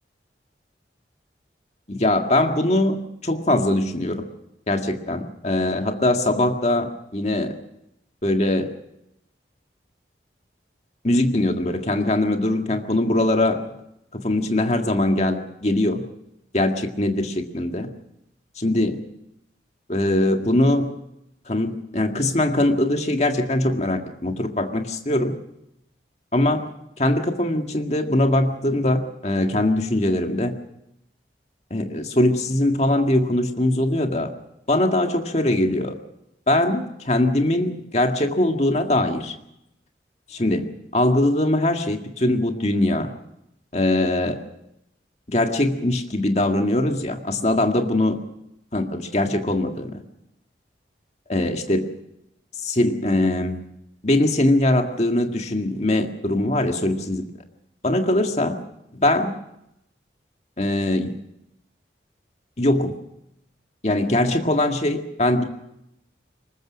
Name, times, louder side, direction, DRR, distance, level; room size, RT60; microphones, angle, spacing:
voice 1, 1.9-4.3 4.7-7.6 8.2-8.7 11.0-13.6 14.1-16.0 16.5-17.9 18.6-19.0 19.9-20.9 21.5-25.4 26.3-26.7 27.0-30.5 31.7-34.3 34.7-36.0 36.5-39.3 40.3-43.1 43.7-44.4 45.3-48.2 48.7-50.0 51.3-51.9 52.6-53.6 54.0-57.2 57.8-58.6 58.9-59.3 60.6-61.2 62.6-62.9 63.8-65.4, left 1 dB, 40° left, 4 dB, 1.9 m, -21 dB
23.5 x 20.5 x 6.2 m, 0.82 s
head